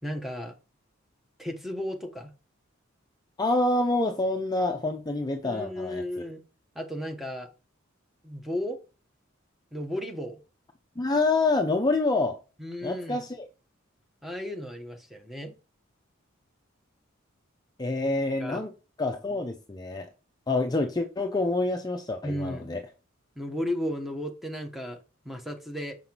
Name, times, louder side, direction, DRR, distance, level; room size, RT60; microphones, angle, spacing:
voice 1, 0.0-0.5 1.4-2.3 5.4-6.4 6.7-7.5 8.2-8.8 9.7-10.4 12.6-13.3 14.2-15.5 18.4-18.6 22.2-22.7 23.4-25.0 25.2-25.9, equal, ahead, 0.9 m, -34 dB
voice 2, 3.4-6.0 11.0-12.4 12.8-13.5 17.8-18.7 19.0-20.1 20.5-22.8, left 2 dB, 20° left, 0.5 m, -27 dB
6.0 x 5.6 x 2.9 m
head